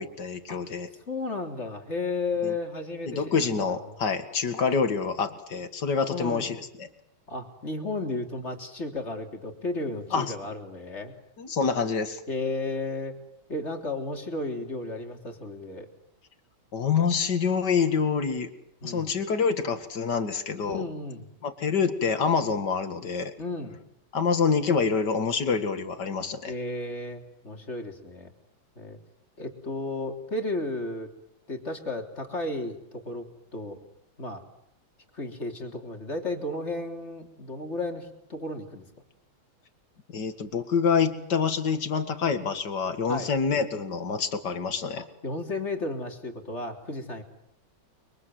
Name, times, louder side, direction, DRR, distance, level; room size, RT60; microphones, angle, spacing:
voice 1, 0.0-0.9 2.4-2.5 3.1-6.9 10.1-10.3 11.4-12.2 16.7-18.5 18.8-20.8 21.4-23.3 24.1-26.5 40.1-45.0, left 5 dB, 60° left, 9 dB, 2.7 m, -26 dB
voice 2, 1.1-3.4 3.7-3.8 6.1-6.5 7.3-11.1 12.3-13.2 13.5-15.9 18.8-19.1 20.6-21.3 23.4-23.8 26.5-28.3 28.8-29.0 29.4-31.1 31.5-33.8 34.2-34.4 35.1-38.9 43.1-43.3 45.0-47.2, left 2 dB, 35° left, 4 dB, 3.7 m, -33 dB
30.0 x 23.5 x 7.9 m, 0.74 s
omnidirectional pair, 2.1 m